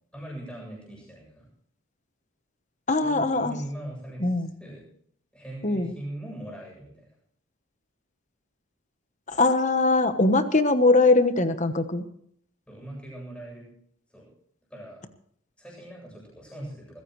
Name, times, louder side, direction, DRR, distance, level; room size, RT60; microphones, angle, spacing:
voice 1, 0.1-1.5 3.0-4.8 5.3-7.1 12.7-13.7 14.1-14.3 14.7-15.0 15.6-17.0, right 1 dB, 5° left, -4 dB, 7.8 m, -40 dB
voice 2, 2.9-3.5 4.2-4.5 5.6-5.9 9.3-12.0, left 2 dB, 35° left, 9 dB, 1.1 m, -21 dB
22.5 x 15.5 x 3.2 m, 0.65 s
head